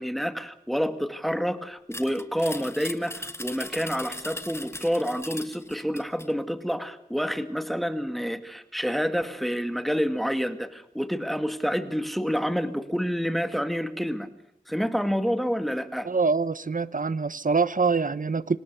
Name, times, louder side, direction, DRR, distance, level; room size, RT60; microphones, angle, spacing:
voice 1, 0.0-14.3 14.7-16.1, equal, ahead, 2.0 m, -28 dB
sound 1, 1.9-6.3, left 1 dB, 15° left, 1.4 m, -39 dB
voice 2, 16.0-18.6, right 4 dB, 65° right, 0.9 m, -25 dB
26.0 x 19.0 x 6.8 m
wide cardioid pair, 50°, 15 cm